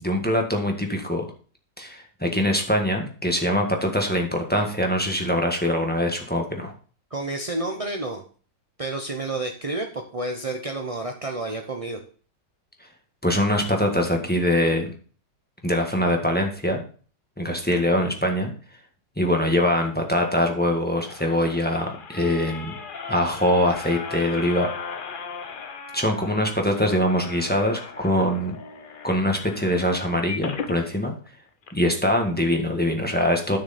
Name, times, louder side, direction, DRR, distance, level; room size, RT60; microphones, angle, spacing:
voice 1, 0.0-1.2 1.8-6.7 13.2-14.9 15.6-16.8 17.4-18.5 19.2-22.8 23.1-24.7 25.9-28.6 29.0-31.1 31.7-33.6, left 1 dB, 5° left, 2 dB, 1.5 m, -23 dB
voice 2, 7.1-8.2 8.8-12.0, right 2 dB, 40° right, 3 dB, 0.5 m, -30 dB
sound 1, 20.6-30.8 31.3-31.4 31.6-31.7, left 5 dB, 45° left, 0.6 m, -37 dB
11.5 x 6.3 x 4.3 m, 0.41 s
omnidirectional pair, 1.9 m